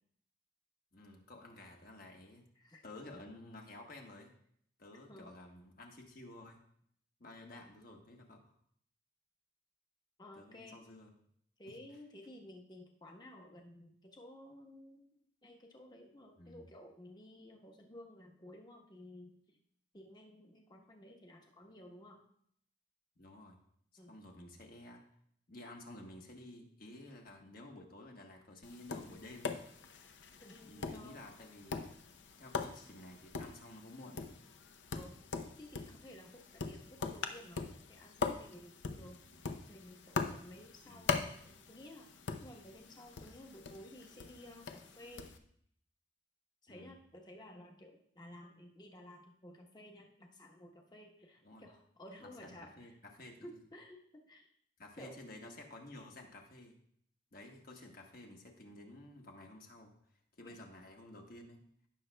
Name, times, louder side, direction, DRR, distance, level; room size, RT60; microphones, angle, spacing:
voice 1, 0.9-2.4 2.8-4.3 4.8-6.6 7.2-8.4 10.3-11.1 11.7-11.8 16.4-16.6 23.2-23.6 23.9-25.0 25.5-29.6 30.6-31.9 32.4-34.3 39.0-39.2 40.8-41.1 46.7-47.0 51.4-51.6 52.2-53.5 54.8-56.8 57.3-59.9 60.4-61.6, left 1 dB, 50° left, 1 dB, 1.3 m, -52 dB
voice 2, 10.2-10.8 11.6-15.0 15.4-19.6 19.9-22.2 24.0-24.1 30.4-31.2 34.9-35.2 35.6-39.2 39.7-42.1 42.4-45.3 46.6-53.0 53.4-54.5 55.0-55.2 60.4-60.6, left 1 dB, 20° left, 1 dB, 1.0 m, -54 dB
Tap, 28.6-45.4, left 4 dB, 70° left, 0.6 m, -42 dB
16.0 x 6.2 x 2.2 m, 0.67 s
head